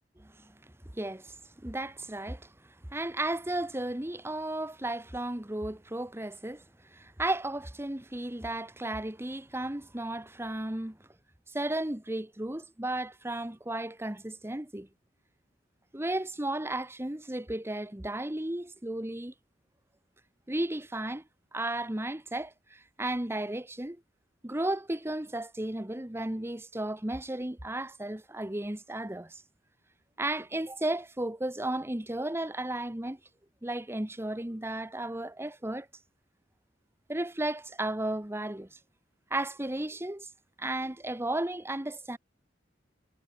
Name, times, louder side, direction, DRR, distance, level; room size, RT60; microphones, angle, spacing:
voice 1, 0.2-11.0 11.5-14.9 15.9-19.3 20.5-21.2 21.5-24.0 24.4-29.4 30.2-33.2 33.6-35.9 37.1-38.8 39.3-40.3 40.6-42.2, right 1 dB, 15° right, 1.1 m, -34 dB
head